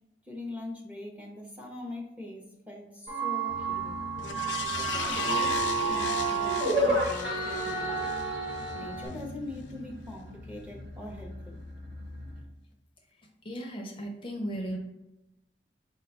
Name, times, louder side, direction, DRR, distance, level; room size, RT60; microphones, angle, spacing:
voice 1, 0.3-4.1 4.8-8.1 8.7-11.6, left 2 dB, 10° right, -1 dB, 0.7 m, -42 dB
sound 1, 3.1-9.1, right 3 dB, 70° right, 1.2 m, -30 dB
sound 2, 3.5-12.4, left 1 dB, 55° right, 0.7 m, -44 dB
sound 3, 4.2-8.7 9.1-9.2, left 7 dB, 90° left, 0.4 m, -37 dB
voice 2, 13.4-14.8, equal, 30° left, 1 dB, 0.5 m, -35 dB
4.7 x 2.2 x 3.9 m, 0.91 s
head